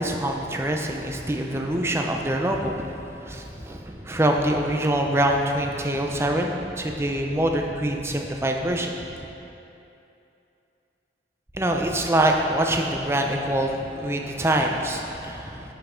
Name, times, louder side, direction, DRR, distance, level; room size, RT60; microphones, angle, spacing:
voice 1, 0.0-9.3 11.5-15.7, right 1 dB, 15° right, 2 dB, 0.5 m, -25 dB
10.5 x 5.7 x 3.8 m, 2.8 s
head